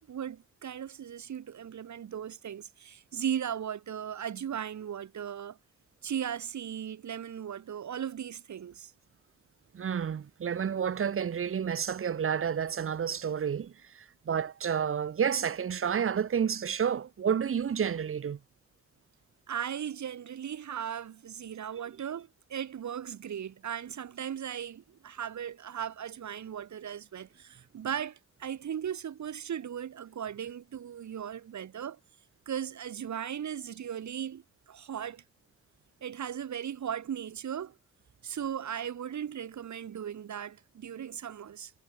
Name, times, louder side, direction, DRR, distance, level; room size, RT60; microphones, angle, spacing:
voice 1, 0.1-5.6 6.0-8.9 19.5-32.0 32.5-35.2 36.0-37.8 38.2-41.7, right 9 dB, 70° right, 3.6 m, -37 dB
voice 2, 9.7-18.4, right 7 dB, 45° right, 1.2 m, -30 dB
wide cardioid pair, 130°, 30 cm